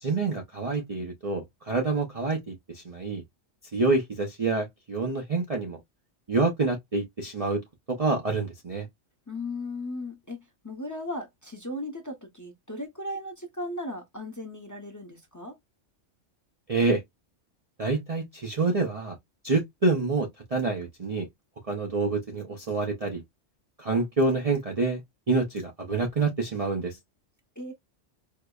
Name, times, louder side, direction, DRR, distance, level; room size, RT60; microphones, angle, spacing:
voice 1, 0.0-3.2 3.7-5.8 6.3-7.6 7.9-8.9 16.7-17.0 17.8-19.2 19.4-21.3 21.7-23.2 23.8-25.0 25.3-27.0, right 3 dB, 40° right, 0.6 m, -27 dB
voice 2, 9.3-15.6 27.6-27.7, left 1 dB, 15° left, 0.7 m, -36 dB
4.7 x 2.0 x 2.3 m
omnidirectional pair, 1.3 m